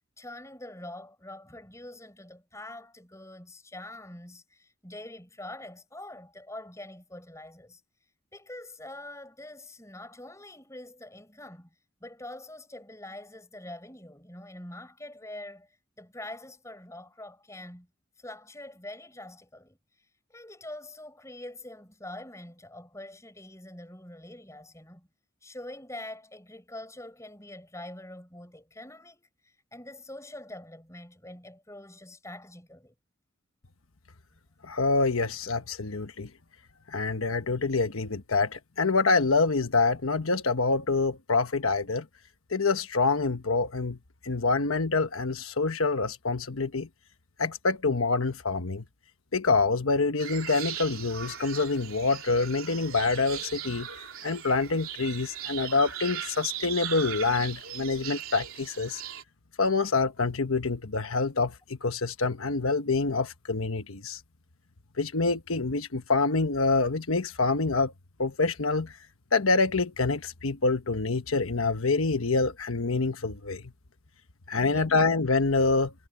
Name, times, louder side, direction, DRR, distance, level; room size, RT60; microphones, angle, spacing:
voice 1, 0.2-7.8 8.3-11.7 12.0-15.7 16.0-17.9 18.2-19.8 20.3-25.1 25.4-32.9 74.6-74.9, left 1 dB, 15° left, 5.4 m, -44 dB
voice 2, 34.6-36.3 36.9-42.1 42.5-44.0 44.2-46.9 47.4-48.8 49.3-53.9 54.2-59.0 59.6-64.2 65.0-67.9 68.2-69.0 69.3-73.6 74.5-75.9, left 3 dB, 85° left, 1.2 m, -26 dB
sound 1, 50.2-59.2, right 10 dB, 85° right, 3.4 m, -39 dB
head